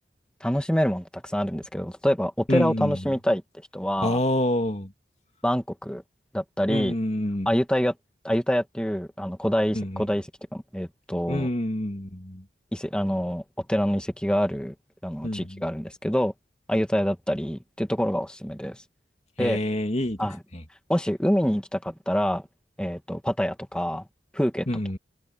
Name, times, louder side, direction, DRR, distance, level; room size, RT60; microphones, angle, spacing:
voice 1, 0.4-3.4 3.7-4.2 5.4-6.0 6.3-6.9 7.4-7.9 8.2-10.3 10.5-11.5 12.7-13.4 13.7-14.7 15.0-16.3 16.7-18.8 19.4-19.6 20.2-20.4 20.9-22.4 22.8-24.0 24.3-24.7, equal, 5° left, 1.7 m, -26 dB
voice 2, 2.5-3.0 4.0-4.9 6.7-7.5 9.7-10.0 11.3-12.4 15.2-15.6 19.4-20.2 20.5-20.6 24.7-25.0, left 1 dB, 40° left, 2.6 m, -27 dB
head